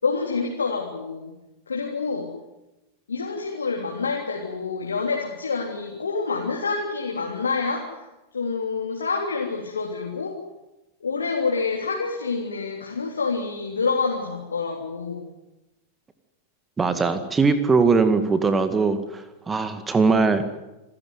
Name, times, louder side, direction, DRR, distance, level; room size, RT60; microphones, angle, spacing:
voice 1, 0.0-1.3 1.7-2.3 3.1-8.0 8.3-10.4 11.0-15.2, left 4 dB, 75° left, 0 dB, 3.5 m, -27 dB
voice 2, 16.8-20.5, right 4 dB, 15° right, 9 dB, 2.0 m, -21 dB
28.0 x 15.5 x 9.6 m, 0.99 s
figure-of-eight pair, 90°, 0 cm